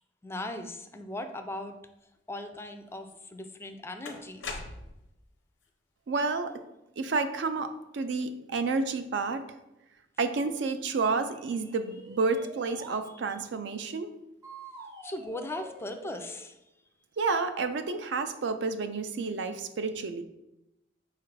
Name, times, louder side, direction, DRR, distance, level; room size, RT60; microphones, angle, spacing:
voice 1, 0.2-1.8 2.3-4.6 15.0-16.6, left 1 dB, 15° left, 7 dB, 0.3 m, -38 dB
sound 1, 3.1-3.2 4.0-5.2, left 3 dB, 85° left, 0.6 m, -40 dB
voice 2, 6.1-6.5 7.0-9.5 10.2-14.1 17.2-20.2, right 4 dB, 70° right, 9 dB, 0.4 m, -30 dB
sound 2, 11.3-13.1 14.4-16.5, right 2 dB, 20° right, 0.6 m, -47 dB
4.7 x 2.4 x 4.5 m, 0.89 s
head